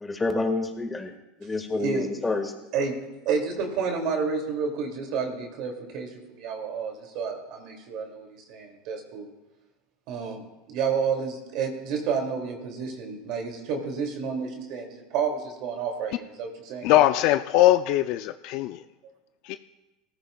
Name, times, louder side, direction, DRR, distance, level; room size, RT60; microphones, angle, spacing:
voice 1, 0.0-1.1 1.4-2.4, left 3 dB, 15° left, 5 dB, 1.8 m, -28 dB
voice 2, 2.7-9.3 10.1-17.0, right 5 dB, 60° right, 2 dB, 2.6 m, -30 dB
voice 3, 16.8-18.8 19.5-19.6, left 14 dB, 60° left, 11 dB, 0.4 m, -21 dB
17.5 x 14.5 x 2.4 m, 1.0 s
hypercardioid pair, 100°, 0 cm